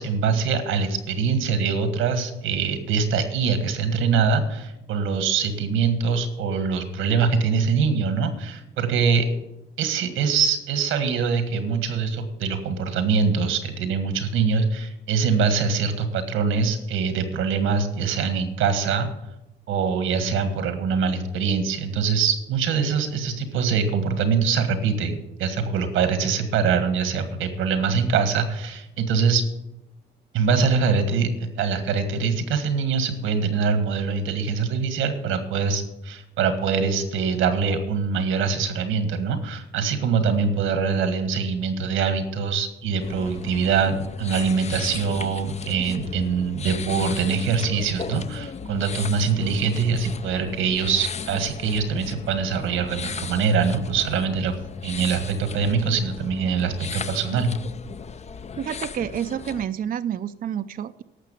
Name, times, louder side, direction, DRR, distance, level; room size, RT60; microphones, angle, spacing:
voice 1, 0.0-9.3 9.8-19.1 19.7-29.4 30.3-54.5 54.8-57.5, right 5 dB, 90° right, 9 dB, 1.7 m, -23 dB
sound 1, 43.0-59.7, left 6 dB, 35° left, 0.5 m, -36 dB
voice 2, 58.6-61.0, right 9 dB, 45° right, 11 dB, 0.5 m, -29 dB
12.0 x 6.8 x 8.3 m, 0.92 s
cardioid pair, 90°, 20 cm